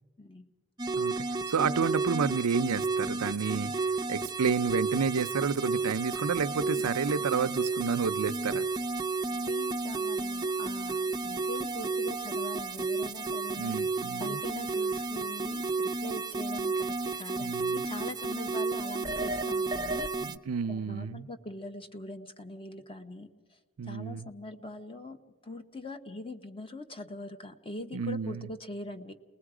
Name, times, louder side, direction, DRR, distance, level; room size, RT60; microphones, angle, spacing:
voice 1, 0.2-0.5 9.3-13.8 14.2-20.1 20.7-23.3 23.8-29.1, left 1 dB, 25° left, 8 dB, 1.1 m, -42 dB
sound 1, 0.8-20.4, right 3 dB, 20° right, 0.6 m, -32 dB
voice 2, 1.0-3.7 4.1-8.7 13.6-14.4 17.4-17.8 20.2-21.3 23.8-24.3 27.9-28.5, right 5 dB, 80° right, 12 dB, 0.5 m, -30 dB
28.5 x 20.5 x 4.9 m, 1.3 s
head